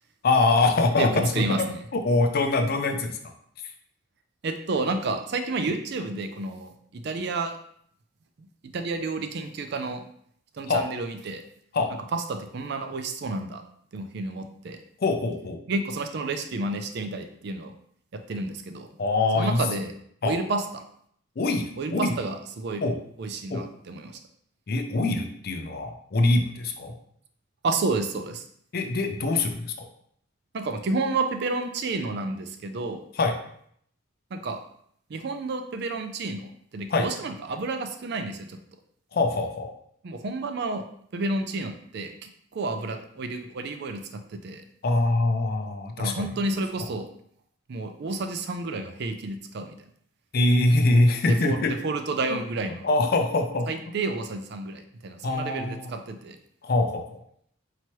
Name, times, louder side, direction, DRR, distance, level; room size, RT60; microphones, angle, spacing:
voice 1, 0.2-1.7 1.9-3.2 10.7-10.8 11.7-11.9 15.0-15.6 19.0-19.6 20.2-20.4 21.4-22.2 22.8-23.0 23.5-23.6 24.7-26.9 28.7-29.9 33.2-33.4 36.9-37.1 39.1-39.7 44.8-46.3 50.3-51.7 52.3-52.4 52.8-53.7 55.2-55.9 56.6-57.2, left 2 dB, 50° left, 5 dB, 0.5 m, -24 dB
voice 2, 1.3-1.8 4.4-7.6 8.7-10.0 10.6-11.4 12.1-13.6 13.9-14.8 15.7-17.7 18.1-18.9 19.3-19.9 20.2-20.8 21.8-22.8 23.2-24.2 27.6-28.4 30.5-33.0 34.3-34.6 35.1-38.6 40.0-40.8 41.1-44.0 44.4-44.6 46.0-47.1 47.7-49.8 51.3-51.6 51.8-52.9 53.7-56.4, right 3 dB, 55° right, 7 dB, 0.4 m, -30 dB
4.6 x 2.9 x 3.0 m, 0.66 s
head